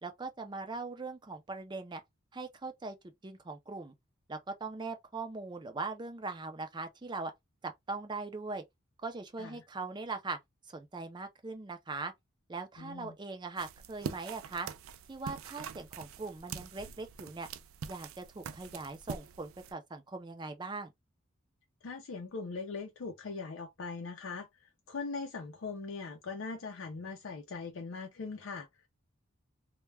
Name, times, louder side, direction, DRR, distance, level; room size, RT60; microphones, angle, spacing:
voice 1, 0.0-2.0 2.3-3.0 3.2-3.9 4.3-7.3 7.6-8.6 9.0-10.4 10.7-12.1 12.5-14.7 15.1-17.5 17.9-20.9, right 3 dB, 20° right, 0.4 m, -40 dB
voice 2, 12.8-13.2 21.8-28.9, left 4 dB, 75° left, 0.5 m, -41 dB
sound 1, 13.6-19.7, right 6 dB, 85° right, 0.3 m, -44 dB
2.2 x 2.2 x 3.2 m
head